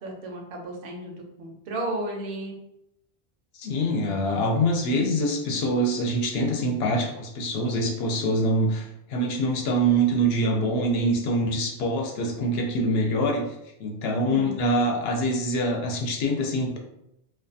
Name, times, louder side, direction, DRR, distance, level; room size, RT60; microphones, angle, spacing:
voice 1, 0.0-2.5 14.1-14.6, right 1 dB, 70° right, 0 dB, 0.8 m, -33 dB
voice 2, 3.6-13.4 13.8-16.8, right 1 dB, 75° left, 2 dB, 0.8 m, -24 dB
2.4 x 2.3 x 2.5 m, 0.83 s
omnidirectional pair, 1.0 m